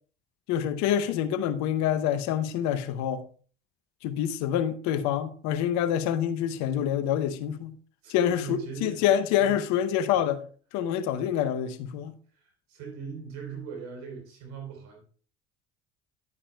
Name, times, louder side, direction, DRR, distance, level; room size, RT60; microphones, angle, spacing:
voice 1, 0.5-3.2 4.0-7.7 8.1-10.4 10.7-12.1, left 10 dB, 65° left, 0.8 m, -26 dB
voice 2, 8.0-9.1 9.4-9.6 12.3-15.0, right 6 dB, 65° right, 3.9 m, -40 dB
10.5 x 9.7 x 2.2 m
hypercardioid pair, 65°, 30 cm